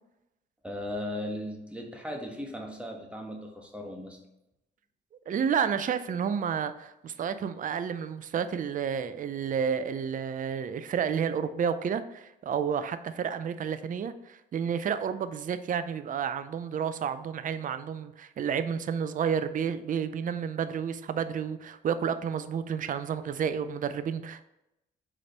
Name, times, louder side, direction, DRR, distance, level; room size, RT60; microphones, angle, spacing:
voice 1, 0.6-4.2, left 1 dB, 5° right, 1 dB, 1.4 m, -37 dB
voice 2, 5.3-24.4, right 7 dB, 40° right, 11 dB, 0.5 m, -30 dB
5.0 x 4.3 x 5.2 m, 0.90 s
cardioid pair, 90°, 20 cm